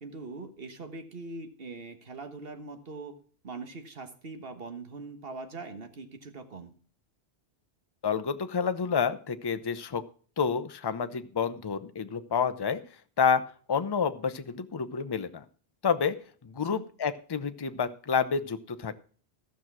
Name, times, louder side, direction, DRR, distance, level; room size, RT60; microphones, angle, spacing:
voice 1, 0.0-3.1 3.4-6.7 16.6-16.8, right 3 dB, 60° right, 7 dB, 1.7 m, -42 dB
voice 2, 8.0-10.0 10.4-12.8 13.2-13.4 13.7-15.4 15.8-16.2 16.4-18.9, left 6 dB, 25° left, 11 dB, 0.6 m, -29 dB
15.0 x 6.2 x 6.1 m, 0.42 s
omnidirectional pair, 1.1 m